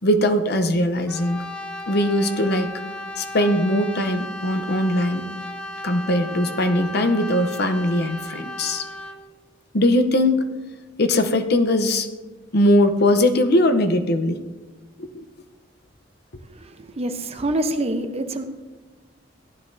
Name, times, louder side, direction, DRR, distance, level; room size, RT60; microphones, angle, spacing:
voice 1, 0.0-1.4 1.9-2.7 3.2-5.2 5.8-8.8 9.7-10.4 11.0-12.1 12.5-14.4 15.0-15.1, left 1 dB, 60° left, 8 dB, 0.8 m, -20 dB
Brass instrument, 1.1-9.2, left 1 dB, 5° left, 0.7 m, -35 dB
voice 2, 16.6-18.4, right 1 dB, 35° right, 7 dB, 0.8 m, -26 dB
15.5 x 10.5 x 2.7 m, 1.2 s
head